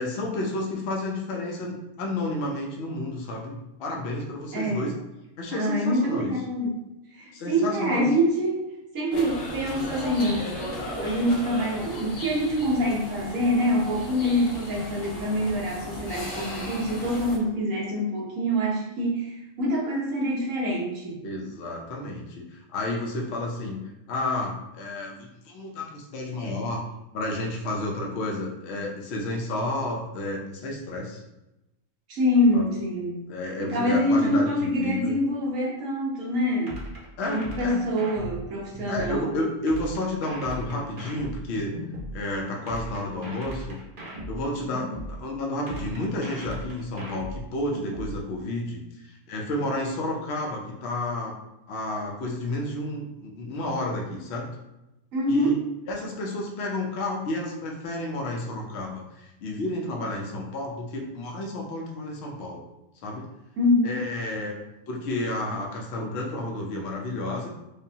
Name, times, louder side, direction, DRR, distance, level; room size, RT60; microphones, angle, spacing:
voice 1, 0.0-4.9 5.4-6.3 7.3-8.1 21.2-23.8 24.1-26.8 27.1-31.2 32.5-32.7 33.3-35.1 37.2-37.8 38.9-41.8 42.1-43.8 44.2-51.3 51.7-54.5 55.3-55.6 55.9-59.0 59.4-62.6 63.0-63.3 63.8-64.6 64.9-67.5, left 1 dB, 60° left, -1 dB, 0.9 m, -31 dB
voice 2, 4.5-5.0 5.5-6.8 7.1-8.6 8.9-10.6 11.0-21.2 32.1-33.2 33.6-36.7 37.3-39.3 55.1-55.6 63.6-64.0, equal, 75° right, -4 dB, 1.4 m, -25 dB
sound 1, 9.1-17.4, left 1 dB, 85° left, 1.3 m, -36 dB
sound 2, 36.7-39.2 39.7-42.2 42.7-45.2 45.7-48.2, right 1 dB, 45° right, 1.0 m, -37 dB
5.1 x 2.2 x 2.8 m, 0.93 s
omnidirectional pair, 1.4 m